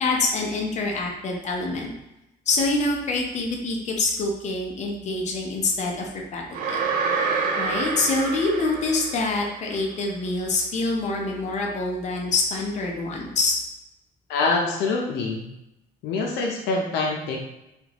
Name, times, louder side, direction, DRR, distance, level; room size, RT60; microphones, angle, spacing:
voice 1, 0.0-1.9 2.5-6.8 7.6-13.6, left 3 dB, 45° left, 0 dB, 0.7 m, -26 dB
sound 1, 6.5-9.6, right 4 dB, 55° right, 0.4 m, -27 dB
voice 2, 14.3-15.4 16.0-17.4, left 3 dB, 80° left, 0 dB, 0.6 m, -25 dB
3.5 x 2.3 x 2.9 m, 0.90 s
cardioid pair, 110°, 17 cm